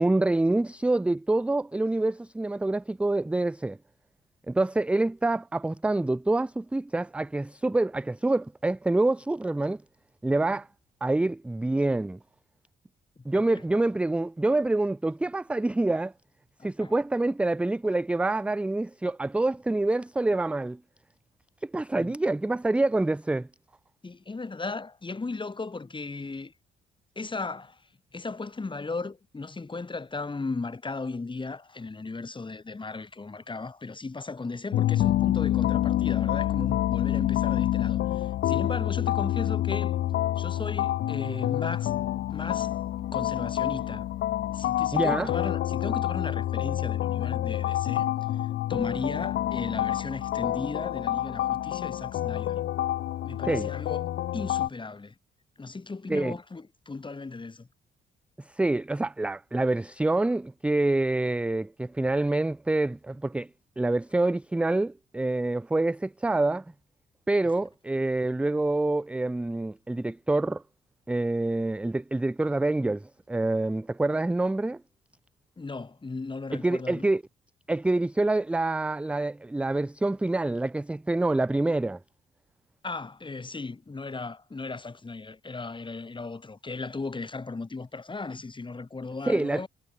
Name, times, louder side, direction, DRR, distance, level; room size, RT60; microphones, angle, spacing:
voice 1, 0.0-3.8 4.5-9.8 10.2-10.7 11.0-12.2 13.3-16.1 16.6-20.8 21.6-23.5 44.9-45.3 53.5-53.7 56.1-56.4 58.5-63.5 63.8-66.6 67.3-70.6 71.1-74.8 76.5-77.2 77.7-82.0 89.3-89.7, right 2 dB, 5° right, 0.3 m, -26 dB
voice 2, 16.6-16.9 21.9-22.1 24.0-26.5 27.2-27.8 28.1-39.9 40.4-41.9 42.3-44.1 44.5-52.6 53.2-55.1 55.6-57.7 75.6-77.1 82.8-89.7, left 3 dB, 25° left, 5.3 m, -36 dB
sound 1, 34.7-54.7, left 13 dB, 65° left, 0.6 m, -27 dB
cardioid pair, 90°, 20 cm